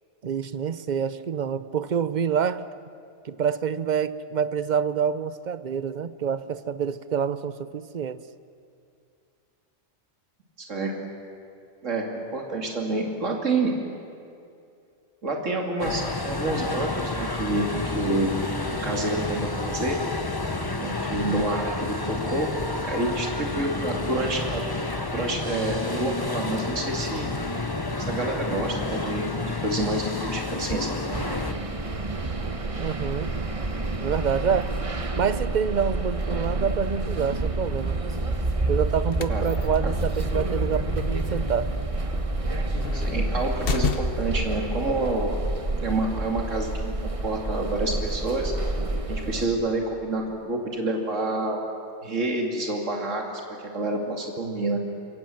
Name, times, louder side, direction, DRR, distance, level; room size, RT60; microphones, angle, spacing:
voice 1, 0.2-2.7 3.2-8.2 32.8-33.4 34.0-34.7 35.2-38.0 38.7-41.7, right 7 dB, 40° right, 14 dB, 0.8 m, -27 dB
voice 2, 10.6-10.9 11.8-13.7 15.2-18.4 18.8-20.0 20.8-22.5 22.8-24.6 25.1-27.3 28.1-31.0 39.3-39.4 39.8-39.9 42.9-45.4 45.8-46.9 47.2-48.5 49.1-51.6 52.0-54.8, right 2 dB, 70° right, 1 dB, 3.0 m, -28 dB
sound 1, 15.8-31.5, left 2 dB, 20° left, 1.1 m, -30 dB
sound 2, 31.1-49.5, right 2 dB, 25° right, 1.3 m, -28 dB
sound 3, 38.9-44.4, left 6 dB, 50° left, 1.2 m, -34 dB
27.5 x 23.5 x 7.8 m, 2.4 s
omnidirectional pair, 1.3 m